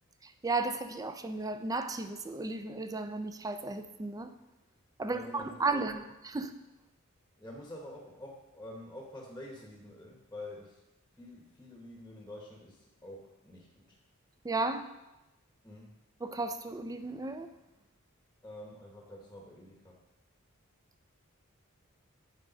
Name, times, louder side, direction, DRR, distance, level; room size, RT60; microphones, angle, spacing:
voice 1, 0.2-4.3 5.0-6.0 6.3-6.5 14.4-14.8 16.2-17.5, right 3 dB, 15° right, 9 dB, 0.4 m, -34 dB
voice 2, 5.0-6.0 7.4-10.8 11.1-14.0 15.6-16.0 18.4-20.0, left 1 dB, 10° left, -1 dB, 1.0 m, -47 dB
8.4 x 4.8 x 5.1 m, 0.99 s
head